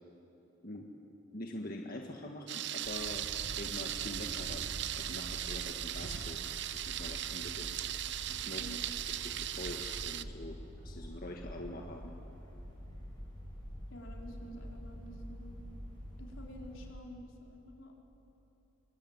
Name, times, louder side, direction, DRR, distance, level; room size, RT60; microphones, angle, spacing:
voice 1, 1.3-4.6 5.0-6.4 6.7-7.8 8.3-8.6 9.2-10.6 10.8-12.1, left 1 dB, 45° left, 1 dB, 1.7 m, -44 dB
Thunder, 2.5-10.2, right 11 dB, 60° right, 0.7 m, -38 dB
sound 1, 2.8-16.9, equal, 20° left, 7.3 m, -47 dB
voice 2, 8.6-8.9 13.9-15.5 16.2-17.9, equal, 80° left, 0 dB, 4.2 m, -49 dB
25.5 x 23.5 x 9.6 m, 3.0 s
head